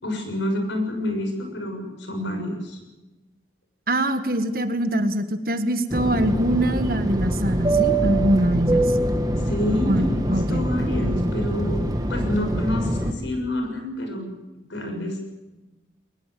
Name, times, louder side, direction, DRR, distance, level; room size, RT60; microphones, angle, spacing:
voice 1, 0.0-2.8 9.5-15.2, left 1 dB, 90° left, 4 dB, 6.6 m, -28 dB
voice 2, 3.9-8.9 9.9-10.6, right 1 dB, 50° right, 9 dB, 1.7 m, -23 dB
Fixed-wing aircraft airplane, 5.9-13.1, right 1 dB, 20° right, 1.8 m, -24 dB
22.5 x 20.0 x 7.7 m, 1.1 s
head